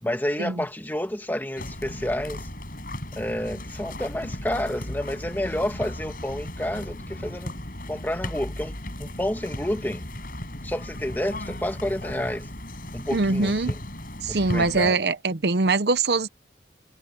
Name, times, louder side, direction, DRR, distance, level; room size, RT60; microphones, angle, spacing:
voice 1, 0.0-2.5 3.1-7.6 7.9-10.1 10.6-12.5 12.9-13.8 14.3-15.0, left 1 dB, 10° left, 2.0 m, -30 dB
sound 1, 1.6-14.9, left 1 dB, 50° left, 7.4 m, -36 dB
voice 2, 13.1-13.7 14.2-16.3, right 3 dB, 65° right, 0.8 m, -23 dB
head